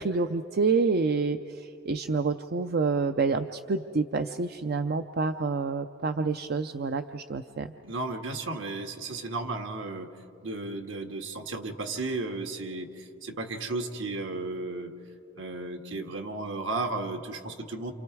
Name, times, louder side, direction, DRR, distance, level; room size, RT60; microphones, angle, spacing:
voice 1, 0.0-7.7, right 4 dB, 55° right, 9 dB, 0.5 m, -28 dB
voice 2, 7.8-10.1 10.4-14.9 15.3-17.9, right 2 dB, 75° right, 4 dB, 1.8 m, -34 dB
28.5 x 28.5 x 4.8 m, 2.6 s
head